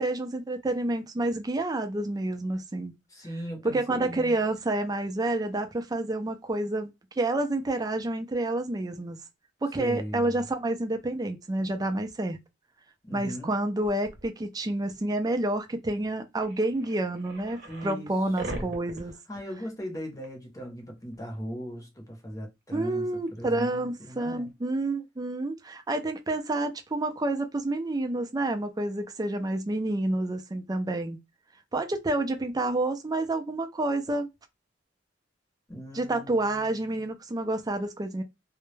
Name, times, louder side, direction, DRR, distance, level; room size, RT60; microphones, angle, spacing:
voice 1, 0.0-2.9 3.6-6.9 7.2-9.2 9.6-12.4 13.1-19.1 22.7-31.2 31.7-34.3 35.9-38.2, right 2 dB, 20° right, 0.4 m, -29 dB
voice 2, 3.1-4.4 9.8-10.4 13.0-13.6 17.6-18.1 18.4-18.7 19.3-24.5 35.7-37.1, equal, 20° left, 0.7 m, -39 dB
sound 1, 13.8-14.3 15.6-15.7 16.0-16.1 16.4-18.0 18.4-20.0 20.2-20.3 21.1-21.2 23.3-23.4, right 1 dB, 60° right, 0.7 m, -40 dB
2.2 x 2.0 x 3.1 m
head